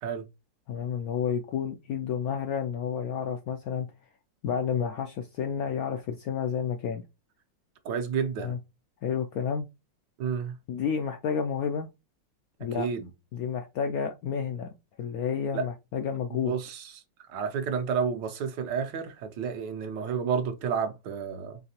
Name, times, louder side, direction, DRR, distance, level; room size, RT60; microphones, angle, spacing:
voice 1, 0.7-3.9 4.4-7.0 8.4-8.6 9.0-9.6 10.7-11.9 12.6-12.9 13.3-14.7 15.0-16.6, left 7 dB, 75° left, 0.8 m, -30 dB
voice 2, 7.8-8.5 10.2-10.5 12.7-13.1 15.5-15.6 16.3-16.8 17.3-21.6, right 6 dB, 75° right, 1.4 m, -30 dB
4.8 x 3.3 x 2.8 m
omnidirectional pair, 2.0 m